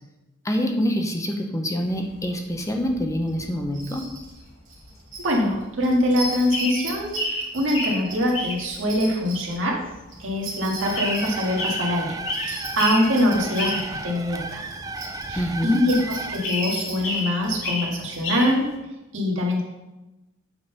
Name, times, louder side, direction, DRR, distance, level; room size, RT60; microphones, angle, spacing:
voice 1, 0.4-4.1 15.4-15.8, equal, 15° left, 3 dB, 0.7 m, -26 dB
sound 1, 1.8-4.5 4.8-18.6, left 1 dB, 75° left, 2.5 m, -31 dB
sound 2, 3.3-3.4 3.7-4.4 4.6-5.4 5.8-9.6 10.1-11.7 12.3-15.2 15.6-17.6 18.1-18.2, right 1 dB, 40° right, 1.9 m, -36 dB
voice 2, 5.2-9.8 10.2-12.1 12.4-14.6 15.3-18.7 19.1-19.6, left 1 dB, 75° right, -1 dB, 1.7 m, -23 dB
sound 3, 10.8-16.5, right 3 dB, 20° right, 0.4 m, -34 dB
8.0 x 3.9 x 5.5 m, 1.0 s
head